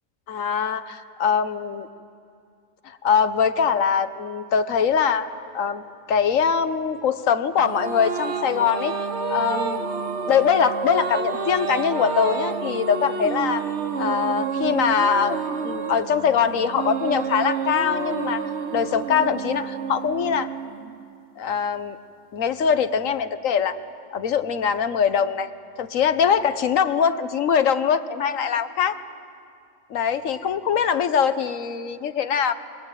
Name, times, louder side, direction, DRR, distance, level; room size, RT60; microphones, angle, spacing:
voice 1, 0.3-1.9 2.8-5.3 5.5-8.9 9.3-9.9 10.3-13.7 14.0-20.5 21.4-22.0 22.3-23.8 24.1-25.5 25.8-29.0 29.9-32.5, left 7 dB, 65° left, 11 dB, 1.3 m, -22 dB
sound 1, 7.6-21.2, right 6 dB, 55° right, 1.3 m, -29 dB
24.5 x 21.5 x 9.0 m, 2.4 s
omnidirectional pair, 1.5 m